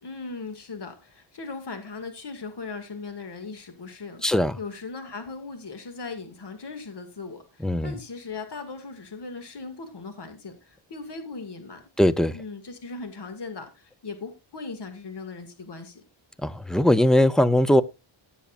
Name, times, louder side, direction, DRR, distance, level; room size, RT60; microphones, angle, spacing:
voice 1, 0.0-11.8 12.3-16.0, left 4 dB, 55° left, 2.1 m, -38 dB
voice 2, 4.2-4.6 7.6-7.9 12.0-12.3 16.4-17.8, left 1 dB, ahead, 0.4 m, -20 dB
17.5 x 7.2 x 2.5 m
wide cardioid pair, 150°, 49 cm